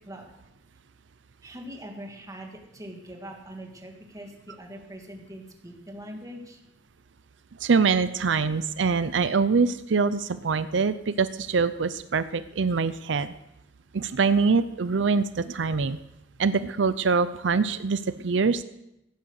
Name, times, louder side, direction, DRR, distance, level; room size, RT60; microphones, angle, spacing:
voice 1, 1.4-6.6, equal, 20° right, 1 dB, 2.5 m, -42 dB
voice 2, 7.6-13.3 13.9-16.0 16.4-18.6, right 4 dB, 90° right, 13 dB, 0.6 m, -24 dB
16.5 x 10.0 x 6.6 m, 0.87 s
head